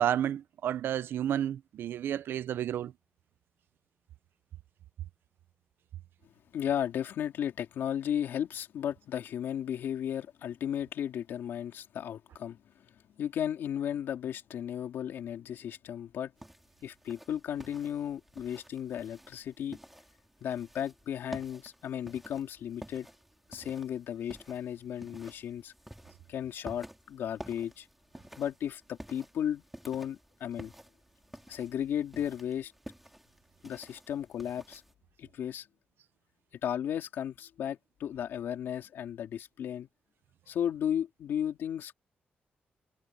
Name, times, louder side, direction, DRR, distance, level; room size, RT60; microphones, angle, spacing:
voice 1, 0.0-2.9, right 10 dB, 80° right, 0.7 m, -31 dB
voice 2, 6.5-12.9 13.2-16.3 16.8-19.8 20.4-23.1 23.5-25.7 26.3-27.9 28.4-30.7 31.5-32.7 33.6-34.8 35.2-35.7 36.6-39.9 40.5-41.9, left 9 dB, 90° left, 3.0 m, -35 dB
sound 1, 16.4-34.9, right 1 dB, 5° right, 2.8 m, -51 dB
wide cardioid pair, 140°, 4 cm